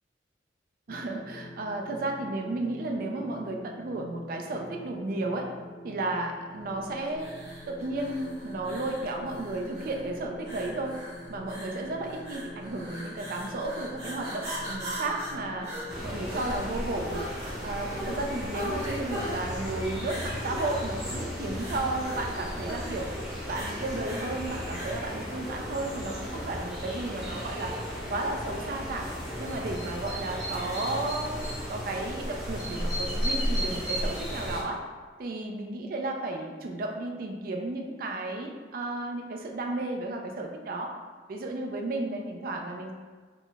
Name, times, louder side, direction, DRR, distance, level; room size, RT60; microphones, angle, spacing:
sound 1, 0.9-16.4, left 1 dB, 55° left, 0.4 m, -46 dB
voice 1, 0.9-5.5 5.8-7.3 7.7-11.0 11.3-15.7 16.0-17.2 17.6-23.1 23.5-27.7 28.1-29.1 29.4-34.8 35.2-40.9 41.3-42.9, right 2 dB, 50° right, 2 dB, 0.4 m, -33 dB
sound 2, 7.2-25.1, equal, 35° right, 1.5 m, -40 dB
sound 3, 15.9-34.6, equal, ahead, 0.9 m, -35 dB
4.1 x 2.0 x 3.3 m, 1.5 s
head